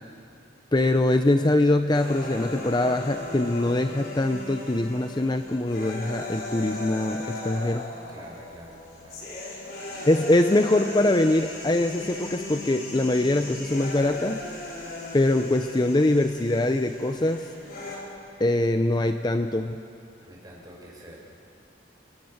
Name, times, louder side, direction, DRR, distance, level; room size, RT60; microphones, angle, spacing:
voice 1, 0.7-7.9 10.1-14.4 15.1-17.5 18.4-19.8, left 1 dB, 25° left, 7 dB, 0.6 m, -23 dB
sound 1, 1.9-18.0, left 2 dB, 55° left, 5.1 m, -38 dB
voice 2, 8.1-9.3 20.2-21.2, equal, 20° right, -3 dB, 5.7 m, -46 dB
29.5 x 22.5 x 6.6 m, 2.6 s
head